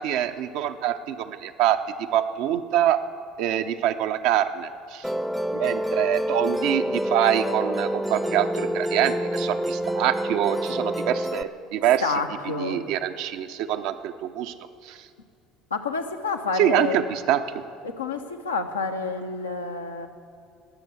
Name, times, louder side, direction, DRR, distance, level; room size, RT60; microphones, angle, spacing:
voice 1, 0.0-1.8 2.1-3.0 3.4-5.1 5.5-12.1 12.6-14.5 14.8-15.1 16.5-17.6, right 11 dB, 60° right, 9 dB, 0.7 m, -25 dB
Musical instrument, 5.0-11.4, equal, ahead, 0.6 m, -27 dB
voice 2, 12.0-12.8 15.7-17.0 17.8-20.1, left 4 dB, 85° left, 4 dB, 0.8 m, -29 dB
18.5 x 6.8 x 8.1 m, 2.3 s
figure-of-eight pair, 65°, 0 cm